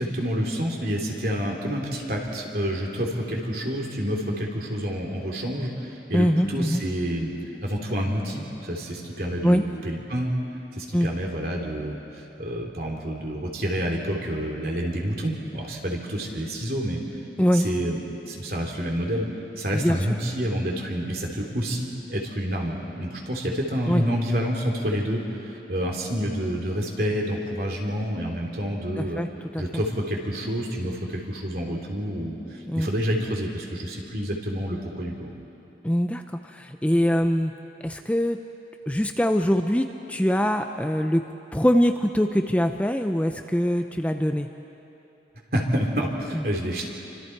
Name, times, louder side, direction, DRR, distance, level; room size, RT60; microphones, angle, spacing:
voice 1, 0.0-7.3 7.6-10.3 10.7-17.0 17.5-18.0 18.3-19.3 19.6-29.2 29.6-35.3 45.5-46.9, equal, 55° right, 0 dB, 3.1 m, -28 dB
voice 2, 6.1-6.8 9.4-9.6 10.9-11.1 17.4-17.6 19.7-20.0 23.9-24.0 29.0-29.6 32.7-32.9 35.8-37.5 37.8-38.4 38.9-41.2 41.5-44.5 46.3-46.4, equal, 10° left, 5 dB, 0.5 m, -23 dB
29.0 x 25.0 x 4.7 m, 3.0 s
head